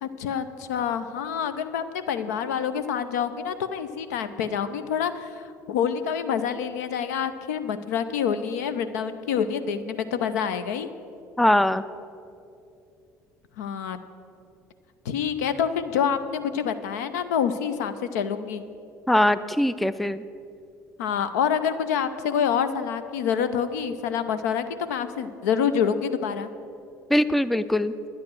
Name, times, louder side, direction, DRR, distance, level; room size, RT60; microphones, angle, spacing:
voice 1, 0.0-10.9 13.6-14.0 15.0-18.6 21.0-26.5, left 7 dB, 70° left, 11 dB, 0.6 m, -27 dB
voice 2, 11.4-11.8 19.1-20.2 27.1-27.9, left 1 dB, ahead, 14 dB, 0.3 m, -21 dB
10.5 x 9.7 x 6.2 m, 2.6 s
figure-of-eight pair, 60°, 9 cm